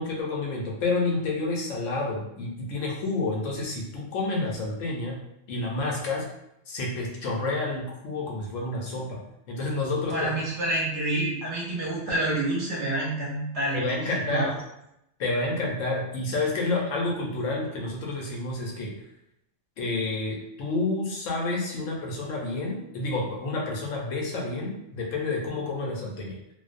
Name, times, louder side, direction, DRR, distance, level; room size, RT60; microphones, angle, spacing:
voice 1, 0.0-5.2 5.5-6.3 6.7-9.2 9.5-10.3 13.7-14.5 15.2-18.9 19.8-26.3, left 2 dB, 80° left, -1 dB, 1.0 m, -29 dB
voice 2, 10.1-14.5, right 1 dB, 60° right, -4 dB, 0.9 m, -28 dB
2.5 x 2.0 x 2.4 m, 0.82 s
omnidirectional pair, 1.3 m